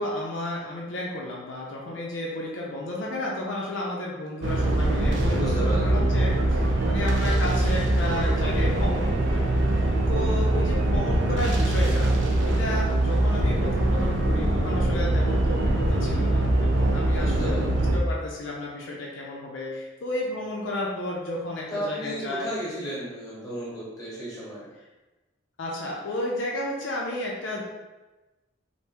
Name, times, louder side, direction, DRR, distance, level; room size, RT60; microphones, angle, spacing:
voice 1, 0.0-17.5 17.9-22.5 25.6-27.6, left 1 dB, 70° left, -3 dB, 0.5 m, -32 dB
sound 1, 4.4-18.0, right 1 dB, 65° right, 0.5 m, -23 dB
voice 2, 5.3-6.1 17.1-17.9 21.7-24.7, equal, 20° left, -6 dB, 1.1 m, -33 dB
3.3 x 2.6 x 2.9 m, 1.1 s
head